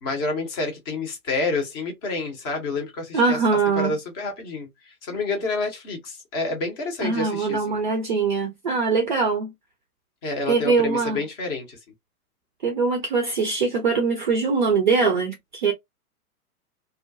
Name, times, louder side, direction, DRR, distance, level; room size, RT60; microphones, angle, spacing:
voice 1, 0.0-3.4 3.8-7.8 10.2-11.8, left 3 dB, 20° left, 0.5 m, -28 dB
voice 2, 3.1-4.0 7.0-9.5 10.5-11.2 12.6-15.7, right 4 dB, 35° right, 0.4 m, -22 dB
2.3 x 2.1 x 2.5 m
figure-of-eight pair, 120°, 45 cm